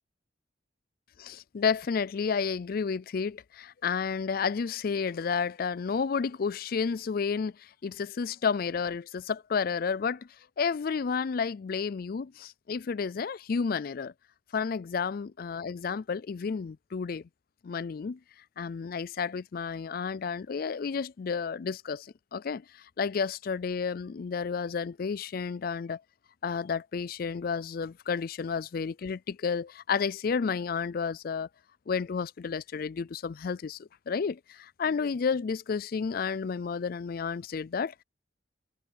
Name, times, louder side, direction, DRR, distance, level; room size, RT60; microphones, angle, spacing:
voice 1, 1.2-10.3 10.6-14.1 14.5-17.2 17.6-18.2 18.6-22.6 23.0-26.0 26.4-31.5 31.9-38.0, left 5 dB, 50° left, 0.4 m, -31 dB
head